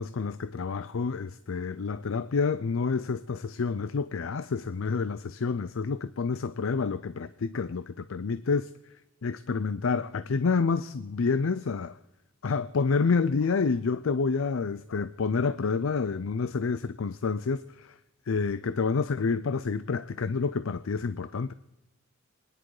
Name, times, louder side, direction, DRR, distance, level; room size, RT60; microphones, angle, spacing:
voice 1, 0.0-8.7 9.2-12.0 12.4-18.0 18.3-21.5, left 4 dB, 80° left, 0.5 m, -28 dB
26.0 x 10.5 x 4.8 m
head